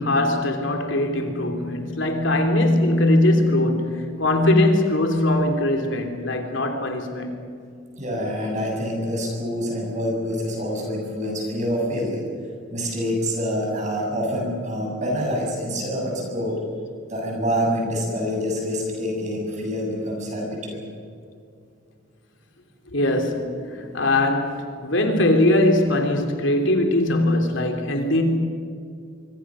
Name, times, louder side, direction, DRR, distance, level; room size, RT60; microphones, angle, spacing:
voice 1, 0.0-7.4 22.9-28.2, left 1 dB, 65° left, 3.3 m, -21 dB
voice 2, 8.0-12.3 12.7-16.6 17.1-20.8 23.4-23.9, equal, 35° right, 7.5 m, -26 dB
25.0 x 25.0 x 6.4 m
head